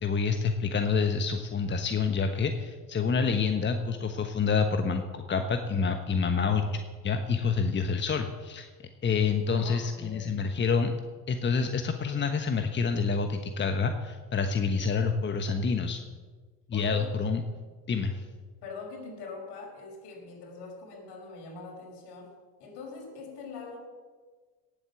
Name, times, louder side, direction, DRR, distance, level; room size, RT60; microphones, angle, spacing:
voice 1, 0.0-8.7 9.0-10.9 11.3-16.0 16.7-17.4 17.9-18.2, left 5 dB, 25° left, 7 dB, 1.2 m, -28 dB
voice 2, 9.5-10.5 16.7-17.2 18.6-22.3 22.6-23.8, left 4 dB, 55° left, 1 dB, 5.2 m, -43 dB
18.0 x 8.5 x 7.1 m, 1.4 s
hypercardioid pair, 70°, 48 cm